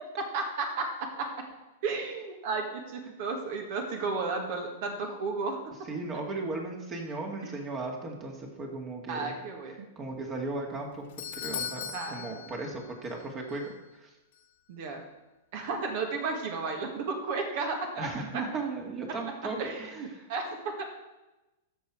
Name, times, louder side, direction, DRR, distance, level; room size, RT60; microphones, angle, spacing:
voice 1, 0.3-1.3 1.8-5.6 7.4-7.5 9.1-9.9 11.9-12.4 14.7-15.0 15.5-18.1 18.3-18.4 19.6-20.8, right 4 dB, 55° right, 3 dB, 1.9 m, -33 dB
voice 2, 5.9-9.3 10.0-11.1 11.4-14.1 18.0-20.2, right 3 dB, 30° right, 1 dB, 2.1 m, -36 dB
Doorbell, 10.7-13.2 13.5-13.6 14.3-14.4, left 8 dB, 60° left, 1.4 m, -39 dB
13.5 x 5.9 x 4.7 m, 1.1 s
figure-of-eight pair, 100°, 0 cm